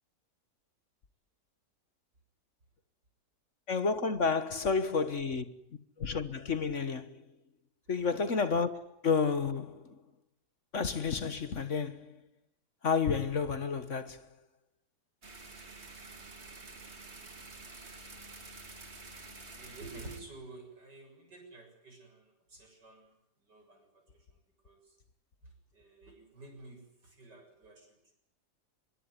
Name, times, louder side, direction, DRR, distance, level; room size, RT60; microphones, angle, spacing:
voice 1, 3.7-5.4 6.0-7.2 7.9-8.7 9.0-9.9 10.7-12.2 12.8-14.2, left 5 dB, 50° left, 1.5 m, -30 dB
sound 1, 15.2-20.2, right 3 dB, 40° right, 2.6 m, -49 dB
voice 2, 19.5-23.1 23.5-24.2 24.6-24.9 25.7-27.9, right 3 dB, 90° right, 7.9 m, -51 dB
25.0 x 21.0 x 9.8 m
omnidirectional pair, 1.8 m